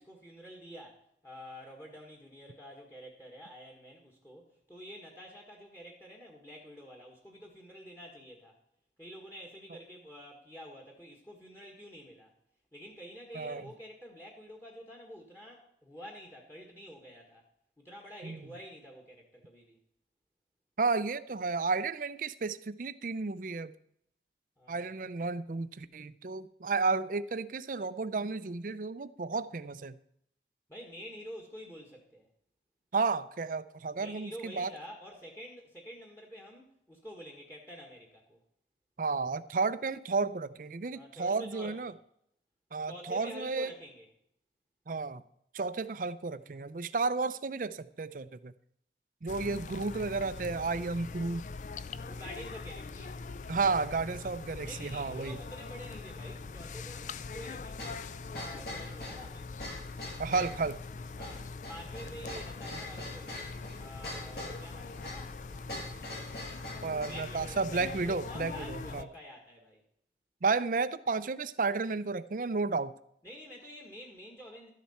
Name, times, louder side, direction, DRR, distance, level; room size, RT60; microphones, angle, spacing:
voice 1, 0.0-8.6 9.0-12.3 12.7-17.5 17.8-19.8 24.6-24.9 30.7-32.3 33.9-38.4 40.9-41.9 42.9-44.1 51.9-53.2 54.6-58.0 58.3-59.5 61.2-63.5 63.8-65.3 66.8-69.8 73.2-74.7, equal, 15° left, 0 dB, 1.6 m, -48 dB
voice 2, 20.8-23.7 24.7-30.0 32.9-34.7 39.0-41.9 42.7-43.7 44.9-45.2 45.5-48.5 49.2-51.4 53.5-55.4 60.2-60.8 66.8-69.1 70.4-72.9, right 4 dB, 45° right, 14 dB, 0.5 m, -32 dB
sound 1, 49.3-69.0, left 4 dB, 45° left, 0.4 m, -43 dB
sound 2, 57.8-67.3, left 1 dB, 65° left, 6.2 m, -43 dB
13.0 x 10.5 x 4.3 m, 0.71 s
head